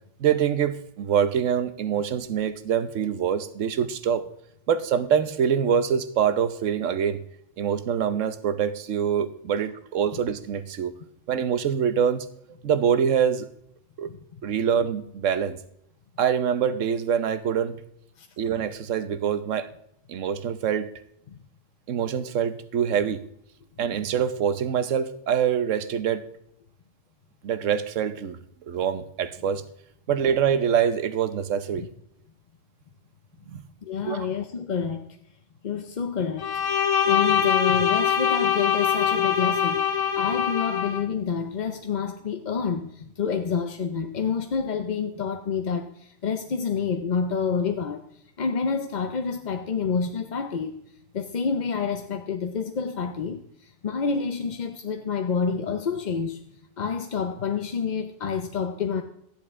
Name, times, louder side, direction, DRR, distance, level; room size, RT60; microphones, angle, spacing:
voice 1, 0.2-4.3 4.7-7.2 7.6-10.9 11.3-12.3 12.6-13.5 14.0-14.1 14.4-15.6 16.2-17.8 18.4-19.7 20.1-20.9 21.9-23.2 23.8-26.2 27.4-28.4 28.7-29.6 30.1-31.9 33.5-33.6 34.1-34.2, right 8 dB, 85° right, 12 dB, 1.1 m, -25 dB
voice 2, 14.1-14.4 18.2-18.3 21.3-21.4 24.0-24.1 31.8-31.9 33.8-35.0 35.6-36.5 37.0-48.0 48.4-50.8 51.1-56.4 56.8-59.0, left 6 dB, 45° left, 7 dB, 0.7 m, -28 dB
Bowed string instrument, 36.4-41.0, left 8 dB, 85° left, 1.2 m, -23 dB
13.5 x 10.0 x 3.6 m, 0.72 s
omnidirectional pair, 1.3 m